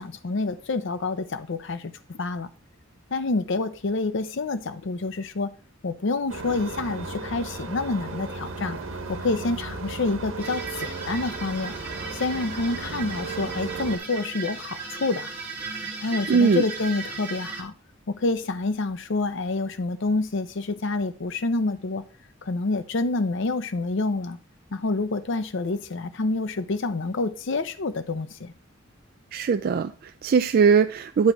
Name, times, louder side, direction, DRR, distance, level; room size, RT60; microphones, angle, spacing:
voice 1, 0.0-2.5 3.1-5.5 5.8-8.8 9.1-11.7 12.1-15.3 16.0-17.7 18.1-22.0 22.4-24.4 24.7-28.5, left 3 dB, 65° left, 0.6 m, -28 dB
sound 1, 6.3-14.0, right 3 dB, 85° right, 1.3 m, -35 dB
sound 2, 10.4-17.6, right 4 dB, 10° right, 2.2 m, -36 dB
voice 2, 16.3-16.6 29.3-31.3, right 5 dB, 50° right, 0.3 m, -20 dB
9.5 x 3.9 x 4.7 m
head